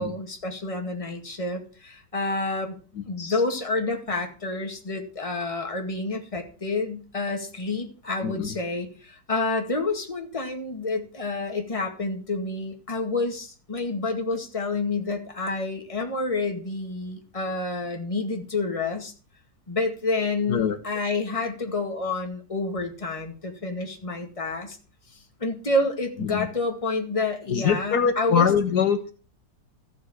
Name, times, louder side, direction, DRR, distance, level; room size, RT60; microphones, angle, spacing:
voice 1, 0.0-2.8 3.1-19.1 19.7-24.8 25.1-28.5, left 3 dB, 20° left, 3 dB, 1.9 m, -29 dB
voice 2, 27.5-29.1, left 7 dB, 65° left, 8 dB, 1.5 m, -23 dB
14.0 x 6.9 x 6.3 m, 0.38 s
omnidirectional pair, 1.9 m